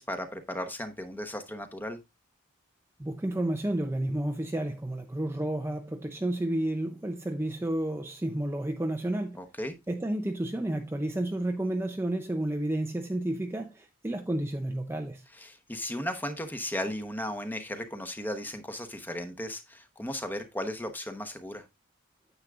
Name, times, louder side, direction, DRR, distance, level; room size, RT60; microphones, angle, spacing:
voice 1, 0.0-2.0 9.3-9.7 15.3-21.6, left 1 dB, 10° left, 1.0 m, -36 dB
voice 2, 3.0-9.4 9.9-15.2, right 1 dB, 10° right, 0.5 m, -31 dB
9.7 x 8.0 x 2.4 m
head